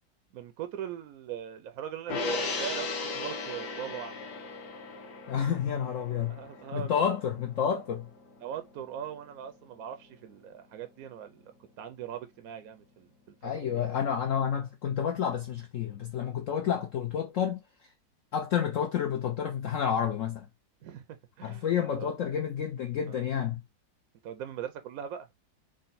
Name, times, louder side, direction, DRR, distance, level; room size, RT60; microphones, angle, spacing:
voice 1, 0.3-2.9 3.1-4.1 6.3-7.0 8.4-11.4 11.8-13.3 13.7-13.9 20.8-21.0 21.4-21.7 22.0-22.1 23.1-23.2 24.2-25.3, right 9 dB, 70° right, 0.8 m, -40 dB
Gong, 2.1-8.7 9.0-9.2, left 3 dB, 55° left, 1.1 m, -37 dB
voice 2, 5.3-6.4 6.7-8.1 13.4-17.6 18.3-20.5 21.4-23.6, left 8 dB, 80° left, 0.7 m, -30 dB
3.8 x 2.1 x 4.0 m
omnidirectional pair, 2.0 m